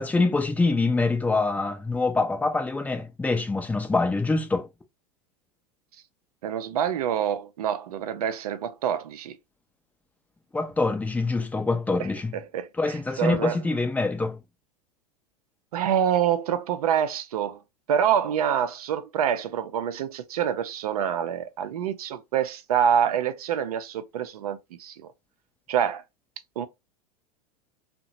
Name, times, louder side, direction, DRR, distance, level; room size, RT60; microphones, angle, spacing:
voice 1, 0.0-4.7 10.5-12.4 12.8-14.4, left 3 dB, 5° left, 0.4 m, -25 dB
voice 2, 6.4-9.4 12.3-12.7 13.2-13.6 15.7-17.6 17.9-25.0 25.7-26.0 26.6-26.7, right 9 dB, 70° right, 0.5 m, -26 dB
2.8 x 2.1 x 2.5 m
figure-of-eight pair, 95°, 20 cm